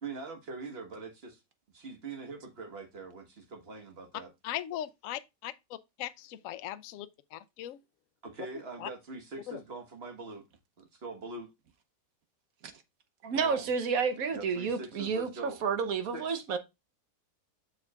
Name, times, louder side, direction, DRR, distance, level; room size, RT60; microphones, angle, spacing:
voice 1, 0.0-1.4 1.7-4.3 8.2-10.4 10.8-11.5 13.3-13.7 14.3-15.6 16.1-16.4, right 3 dB, 40° right, 1.5 m, -43 dB
voice 2, 4.4-7.8 8.8-8.9 9.5-9.6, left 12 dB, 70° left, 0.8 m, -39 dB
voice 3, 13.2-16.6, right 5 dB, 60° right, 1.2 m, -30 dB
7.2 x 6.3 x 2.4 m
omnidirectional pair, 1.9 m